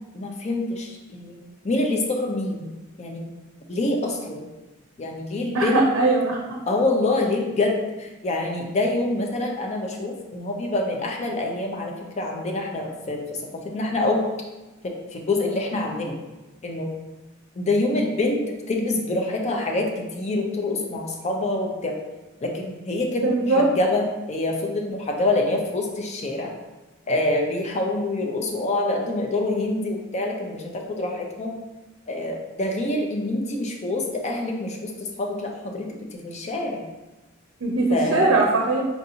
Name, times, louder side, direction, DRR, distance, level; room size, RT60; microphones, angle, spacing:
voice 1, 0.1-2.7 3.0-3.3 3.7-4.5 5.0-5.9 6.7-13.2 13.5-14.2 14.8-16.2 16.6-16.9 17.6-18.4 18.7-21.9 22.4-26.5 27.1-31.5 32.1-36.8 37.9-38.4, left 2 dB, 35° left, 1 dB, 0.5 m, -26 dB
voice 2, 5.5-6.4 23.2-23.6 37.6-38.9, right 2 dB, 70° right, -1 dB, 0.5 m, -20 dB
4.5 x 2.6 x 2.8 m, 1.1 s
head